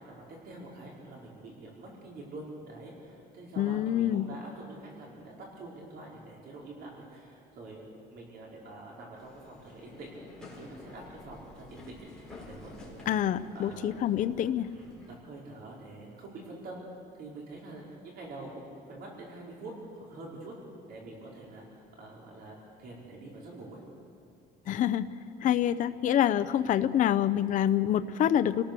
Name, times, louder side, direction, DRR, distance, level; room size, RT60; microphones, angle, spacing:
voice 1, 0.0-7.8 8.1-13.2 13.5-14.0 14.7-16.8 17.2-20.5 20.8-23.8, right 2 dB, 60° right, -3 dB, 4.6 m, -46 dB
voice 2, 3.6-4.3 13.1-14.7 24.7-25.1 25.4-28.6, left 10 dB, 45° left, 11 dB, 0.6 m, -26 dB
sound 1, 9.2-15.2, left 2 dB, 5° left, 4.7 m, -50 dB
29.0 x 18.5 x 6.8 m, 2.4 s
cardioid pair, 165°, 18 cm